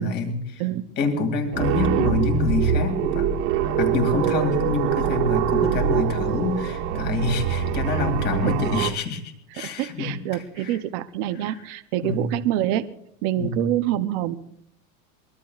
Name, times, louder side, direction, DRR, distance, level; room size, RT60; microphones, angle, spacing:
voice 1, 0.0-0.6 1.0-3.4 3.8-10.8 11.4-11.6 12.0-12.3 13.4-13.7, left 4 dB, 25° left, 4 dB, 2.3 m, -27 dB
sound 1, 1.5-8.9, right 8 dB, 60° right, 1.7 m, -24 dB
voice 2, 9.6-12.9 13.2-14.4, right 13 dB, 40° right, 9 dB, 0.6 m, -26 dB
23.5 x 21.0 x 2.4 m, 0.69 s
supercardioid pair, 175°, 40 cm